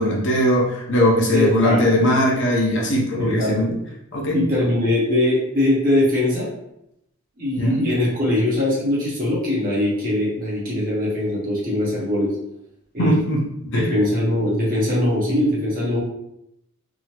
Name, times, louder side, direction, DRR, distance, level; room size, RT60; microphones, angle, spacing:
voice 1, 0.0-3.7 4.1-4.4 7.6-7.8 13.0-13.4 13.7-13.8, left 1 dB, 55° left, -3 dB, 0.7 m, -19 dB
voice 2, 1.3-1.8 3.1-3.7 4.3-6.5 7.4-12.3 12.9-13.2 13.7-16.0, left 1 dB, 40° right, -6 dB, 1.1 m, -21 dB
3.5 x 2.0 x 2.9 m, 0.81 s
head